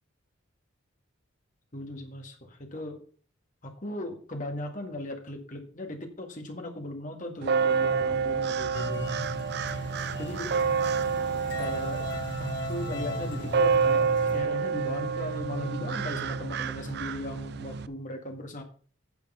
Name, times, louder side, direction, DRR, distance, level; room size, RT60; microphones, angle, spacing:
voice 1, 1.7-3.0 3.6-9.3 10.2-10.5 11.6-12.1 12.4-18.6, left 1 dB, 40° left, 3 dB, 1.9 m, -37 dB
sound 1, 7.4-17.9, right 5 dB, 50° right, 0.4 m, -28 dB
sound 2, 8.7-14.4, left 2 dB, 60° left, 1.2 m, -37 dB
9.5 x 6.6 x 5.6 m, 0.42 s
head